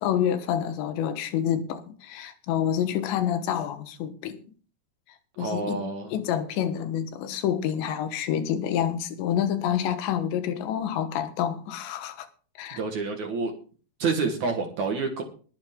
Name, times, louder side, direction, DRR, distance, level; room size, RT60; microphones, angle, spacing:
voice 1, 0.0-4.4 5.4-5.8 6.1-12.3 12.6-12.8, left 9 dB, 75° left, 3.4 m, -28 dB
voice 2, 5.4-6.1 12.8-13.5 14.0-15.2, right 4 dB, 55° right, 2.3 m, -28 dB
21.0 x 8.2 x 3.7 m
omnidirectional pair, 5.3 m